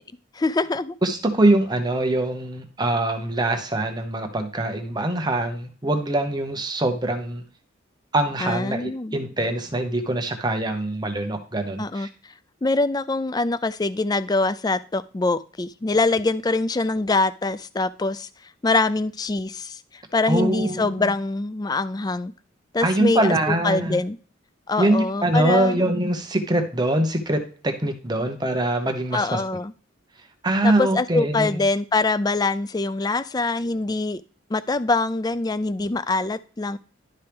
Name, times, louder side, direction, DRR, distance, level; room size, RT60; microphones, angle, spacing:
voice 1, 0.3-0.9 8.4-9.2 11.8-12.1 12.6-18.3 18.6-22.3 22.7-23.3 23.6-24.2 24.7-25.8 29.1-29.7 30.6-34.2 34.5-36.8, left 3 dB, 20° left, 15 dB, 0.3 m, -24 dB
voice 2, 1.0-7.4 8.1-12.1 20.3-21.1 22.8-24.0 24.8-29.4 30.4-31.6, right 1 dB, 20° right, 5 dB, 0.9 m, -23 dB
11.5 x 4.4 x 3.5 m, 0.39 s
head